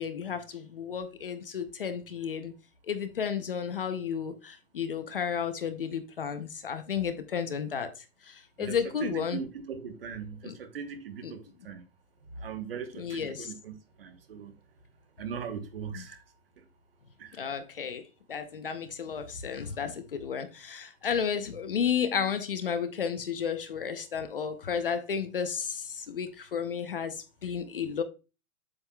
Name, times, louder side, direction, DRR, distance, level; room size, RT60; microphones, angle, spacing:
voice 1, 0.0-2.5 2.9-7.9 8.2-9.4 10.4-10.6 11.2-11.3 13.0-13.5 15.9-16.0 17.3-18.0 18.3-28.0, left 7 dB, 40° left, 0.6 m, -32 dB
voice 2, 8.6-11.8 12.4-14.5 15.2-16.2 17.2-17.4, right 6 dB, 40° right, 1.1 m, -40 dB
7.9 x 7.5 x 2.2 m
hypercardioid pair, 180°, 43 cm